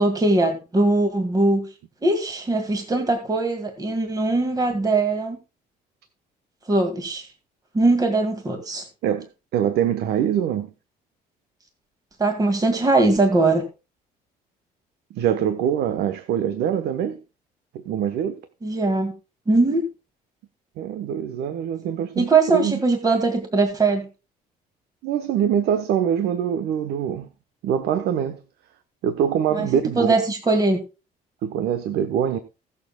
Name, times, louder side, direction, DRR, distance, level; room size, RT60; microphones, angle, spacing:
voice 1, 0.0-1.7 2.0-5.4 6.7-7.3 7.7-8.8 12.2-13.6 18.6-19.1 19.5-19.9 22.2-24.1 29.5-29.7 30.0-30.8, right 2 dB, 20° right, 2.2 m, -21 dB
voice 2, 9.0-10.7 15.1-17.2 17.7-18.4 20.8-22.8 25.0-27.3 27.6-28.4 29.0-30.2 31.4-32.4, right 9 dB, 75° right, 1.2 m, -24 dB
21.0 x 7.1 x 2.3 m
cardioid pair, 110°, 17 cm